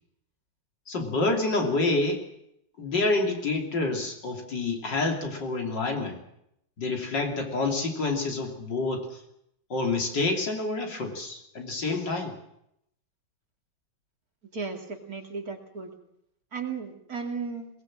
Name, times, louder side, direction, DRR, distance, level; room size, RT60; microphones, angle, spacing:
voice 1, 0.9-2.2 2.8-6.2 6.8-9.1 9.7-12.4, left 3 dB, 60° left, 2 dB, 3.6 m, -28 dB
voice 2, 14.5-15.9 16.5-17.7, right 5 dB, 45° right, 3 dB, 2.9 m, -35 dB
21.5 x 19.5 x 7.5 m, 0.76 s
omnidirectional pair, 2.2 m